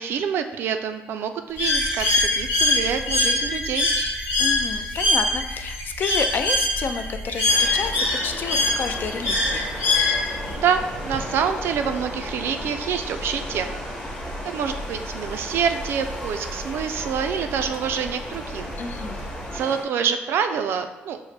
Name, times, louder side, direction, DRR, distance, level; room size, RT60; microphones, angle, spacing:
voice 1, 0.0-3.9 10.6-13.8 14.4-18.7 19.5-21.2, right 7 dB, 70° right, 8 dB, 0.3 m, -26 dB
Bird, 1.6-10.5, left 2 dB, 80° left, 1.2 m, -23 dB
sound 1, 1.6-19.6, right 1 dB, 20° right, 0.5 m, -38 dB
voice 2, 4.4-9.7 18.8-19.3, left 5 dB, 55° left, 8 dB, 0.4 m, -30 dB
sound 2, 7.5-19.8, left 1 dB, 20° left, 1.0 m, -36 dB
5.2 x 2.1 x 3.2 m, 1.0 s
cardioid pair, 85°, 4 cm